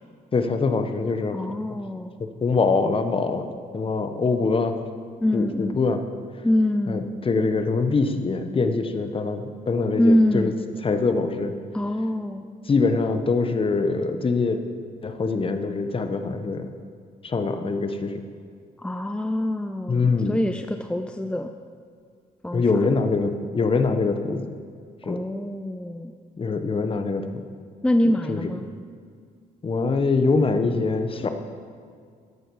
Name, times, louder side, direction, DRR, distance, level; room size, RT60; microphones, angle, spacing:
voice 1, 0.3-1.4 2.2-3.5 3.7-4.7 5.3-6.0 6.9-10.5 10.8-11.5 12.7-14.6 15.0-16.7 17.2-18.2 19.9-20.4 22.5-24.5 25.0-25.2 26.4-27.3 28.3-28.5 29.6-31.3, left 4 dB, 35° left, 7 dB, 1.1 m, -23 dB
voice 2, 1.3-2.1 5.2-5.8 6.4-7.1 10.0-10.5 11.7-12.4 18.8-21.5 22.4-22.6 25.0-26.1 27.8-28.7, left 1 dB, 5° left, 6 dB, 0.5 m, -24 dB
13.5 x 11.0 x 4.8 m, 2.1 s
cardioid pair, 100°, 16 cm